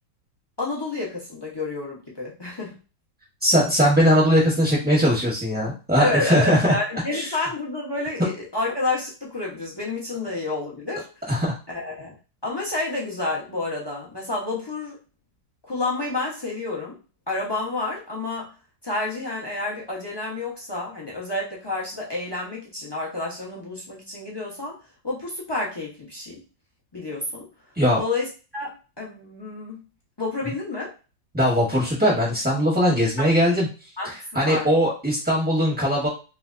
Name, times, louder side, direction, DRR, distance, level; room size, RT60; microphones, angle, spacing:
voice 1, 0.6-2.8 6.0-11.1 11.7-12.2 12.4-15.0 15.6-17.0 17.3-18.5 18.8-24.8 25.0-26.4 26.9-27.5 28.0-29.8 30.2-30.9 33.2-33.3 34.0-34.7, left 2 dB, 25° left, -3 dB, 0.5 m, -29 dB
voice 2, 3.4-6.7 7.1-7.3 11.3-11.5 27.8-28.0 31.3-33.7 34.3-36.1, equal, 5° right, -5 dB, 0.8 m, -20 dB
3.3 x 3.1 x 2.5 m, 0.33 s
omnidirectional pair, 1.9 m